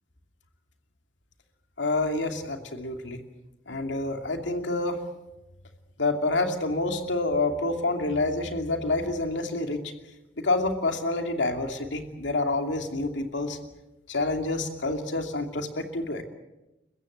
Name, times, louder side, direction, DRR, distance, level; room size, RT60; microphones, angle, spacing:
voice 1, 1.8-3.2 3.7-5.0 6.0-9.9 10.4-13.6 14.1-16.2, left 2 dB, 70° left, 5 dB, 2.7 m, -28 dB
29.5 x 15.0 x 8.1 m, 0.97 s
head